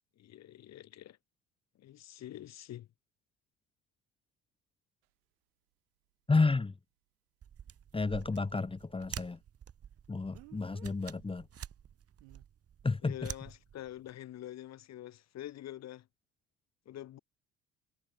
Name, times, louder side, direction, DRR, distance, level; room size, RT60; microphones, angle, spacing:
voice 1, 0.2-1.2 1.8-2.9 13.0-16.1 16.8-17.2, left 12 dB, 50° left, 1.7 m, -46 dB
Speech, 5.0-5.1 10.3-11.0 12.2-12.5, right 32 dB, 75° right, 2.2 m, -56 dB
voice 2, 6.3-6.7 7.9-9.4 10.1-11.5 12.8-13.2, left 3 dB, 15° left, 1.4 m, -31 dB
sound 1, 7.4-14.1, right 9 dB, 45° right, 5.7 m, -49 dB
hypercardioid pair, 65°, 33 cm